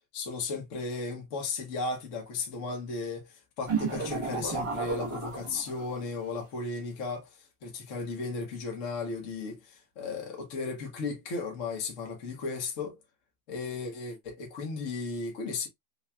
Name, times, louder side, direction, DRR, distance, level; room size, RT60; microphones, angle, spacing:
voice 1, 0.1-13.0 13.5-15.7, left 4 dB, 45° left, 1.2 m, -35 dB
sound 1, 3.7-6.1, right 5 dB, 25° right, 0.8 m, -33 dB
5.8 x 2.4 x 2.2 m
omnidirectional pair, 2.1 m